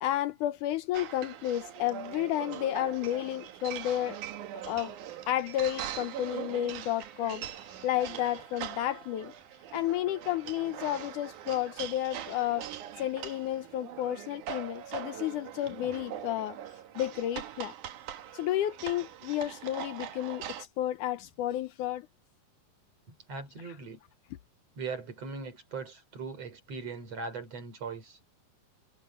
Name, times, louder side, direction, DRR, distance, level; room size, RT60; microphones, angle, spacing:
voice 1, 0.0-4.2 4.7-4.9 5.3-7.4 7.8-9.3 9.7-12.7 13.0-16.6 17.0-17.7 18.3-22.1, left 13 dB, 75° left, 2.1 m, -31 dB
sound 1, 0.9-20.7, right 10 dB, 65° right, 2.6 m, -42 dB
voice 2, 23.1-24.0 24.8-28.2, right 4 dB, 45° right, 5.5 m, -40 dB
omnidirectional pair, 4.0 m